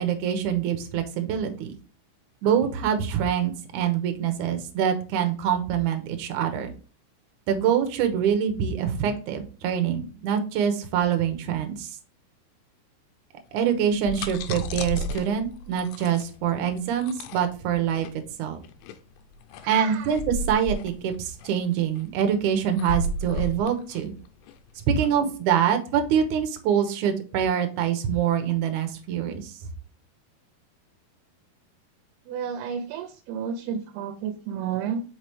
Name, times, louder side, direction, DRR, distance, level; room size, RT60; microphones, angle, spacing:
voice 1, 0.0-1.7 2.4-6.7 7.5-11.9 13.5-18.1 18.4-18.6 19.7-24.1 24.9-29.5, right 8 dB, 70° right, 7 dB, 2.0 m, -25 dB
sound 1, 13.8-25.2, equal, 80° left, 2.4 m, -34 dB
voice 2, 19.6-20.2 32.3-35.0, right 7 dB, 90° right, 7 dB, 2.7 m, -32 dB
6.0 x 5.0 x 3.2 m, 0.38 s
omnidirectional pair, 4.5 m